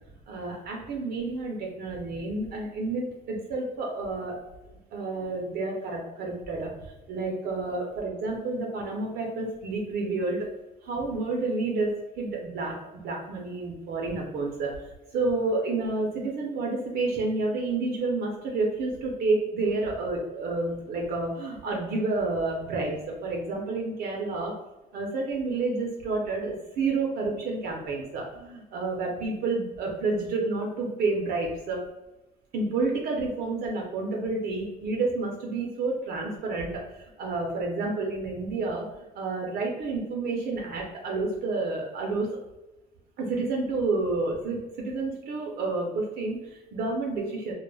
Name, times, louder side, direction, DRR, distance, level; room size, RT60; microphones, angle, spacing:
voice 1, 0.3-4.4 4.9-10.5 10.8-24.5 24.9-31.8 32.5-42.3 43.2-47.5, right 3 dB, 65° right, 0 dB, 0.6 m, -30 dB
2.2 x 2.0 x 3.2 m, 1.0 s
cardioid pair, 110°, 17 cm